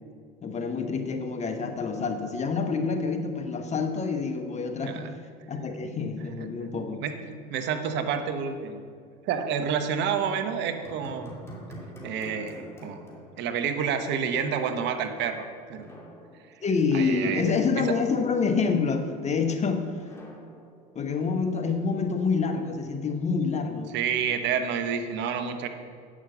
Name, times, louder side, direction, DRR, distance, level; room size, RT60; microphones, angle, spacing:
voice 1, 0.4-5.1 5.5-7.0 16.6-19.9 20.9-23.9, left 5 dB, 35° left, 5 dB, 1.3 m, -27 dB
voice 2, 6.6-7.1 7.5-8.8 9.3-11.3 12.0-13.0 13.4-15.8 16.9-17.4 17.8-17.9 23.9-25.7, right 7 dB, 60° right, 8 dB, 1.0 m, -29 dB
sound 1, 10.8-14.1 14.4-14.5 15.7-17.2 20.0-21.6, equal, 10° left, 2.6 m, -46 dB
9.1 x 6.2 x 6.8 m, 2.1 s
hypercardioid pair, 80°, 21 cm